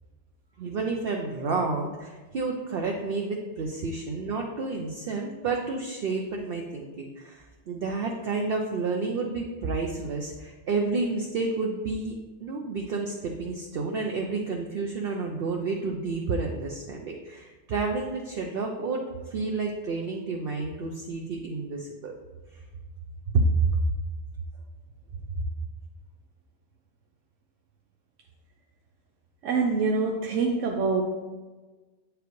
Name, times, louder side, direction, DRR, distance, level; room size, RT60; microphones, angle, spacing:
voice 1, 0.6-12.1 12.4-22.1 22.5-22.6 23.3-23.8 25.3-25.5, right 3 dB, 60° right, 1 dB, 0.8 m, -30 dB
voice 2, 29.4-31.0, right 4 dB, 90° right, 1 dB, 1.0 m, -25 dB
8.0 x 5.0 x 3.1 m, 1.3 s
omnidirectional pair, 1.2 m